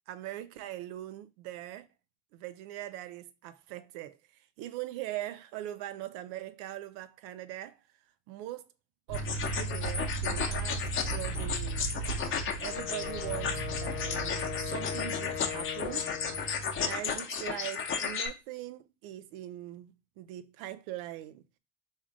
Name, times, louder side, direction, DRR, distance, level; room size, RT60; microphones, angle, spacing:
voice 1, 0.1-1.9 2.3-4.2 4.6-7.8 8.3-8.7 9.1-11.9 12.6-16.1 16.8-21.4, right 13 dB, 65° right, 0.6 m, -41 dB
sound 1, 9.1-18.3, left 6 dB, 35° left, 0.9 m, -34 dB
sound 2, 9.1-17.0, right 4 dB, 85° right, 1.2 m, -37 dB
Wind instrument woodwind instrument, 12.6-16.7, left 10 dB, 65° left, 0.8 m, -40 dB
3.6 x 2.7 x 3.6 m
hypercardioid pair, 75°, 37 cm